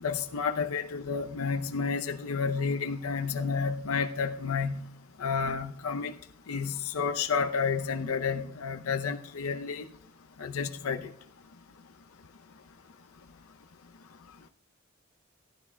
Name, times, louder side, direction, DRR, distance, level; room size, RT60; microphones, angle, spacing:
voice 1, 0.0-4.9 5.2-6.1 6.5-9.8 10.4-11.1, left 5 dB, 80° left, 6 dB, 0.6 m, -30 dB
15.5 x 12.0 x 2.2 m, 0.72 s
head